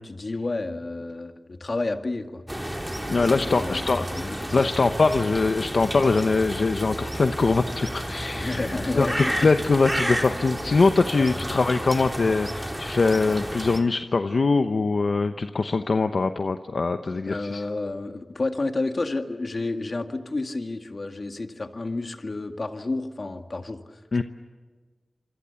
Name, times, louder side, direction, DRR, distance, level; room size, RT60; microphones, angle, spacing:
voice 1, 0.0-2.4 3.2-4.9 8.4-9.5 11.1-11.4 17.3-24.2, left 2 dB, 55° left, 6 dB, 2.0 m, -31 dB
sound 1, 2.5-13.8, equal, 10° right, 3.1 m, -31 dB
voice 2, 3.1-8.7 8.9-17.6 24.1-24.2, left 3 dB, 70° left, 7 dB, 0.9 m, -23 dB
27.5 x 25.0 x 7.1 m, 1.4 s
cardioid pair, 50°, 0 cm